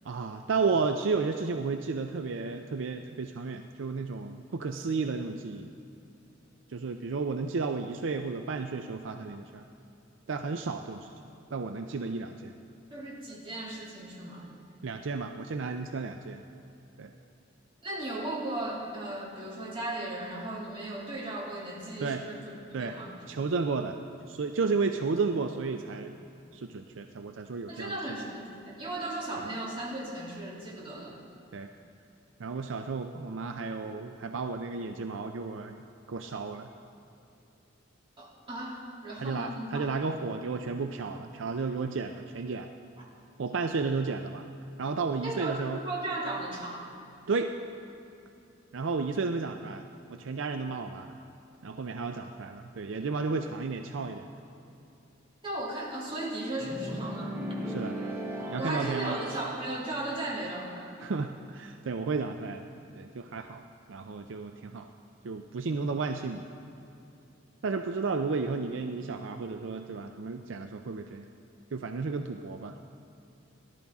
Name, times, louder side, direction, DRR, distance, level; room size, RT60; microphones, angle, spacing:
voice 1, 0.0-5.7 6.7-9.6 10.3-11.1 11.5-12.5 14.8-16.4 17.0-17.1 22.0-22.2 22.7-22.9 23.3-24.0 24.3-26.2 26.5-28.0 31.5-31.7 32.4-35.8 36.1-36.7 39.2-42.7 43.4-44.5 44.8-45.8 47.3-47.5 48.7-51.1 51.6-54.3 57.7-57.9 58.5-59.2 61.0-62.6 63.0-63.6 63.9-64.9 65.2-66.4 67.6-71.3 71.7-72.7, right 4 dB, 70° right, 6 dB, 0.5 m, -32 dB
voice 2, 12.9-14.5 17.8-22.5 22.8-23.1 27.7-31.2 38.2-39.9 43.0-43.1 45.2-46.9 55.4-57.4 58.6-60.9, right 1 dB, 25° right, -5 dB, 2.8 m, -36 dB
sound 1, 56.6-59.6, equal, 10° right, 1.2 m, -37 dB
18.0 x 11.5 x 3.6 m, 2.7 s
head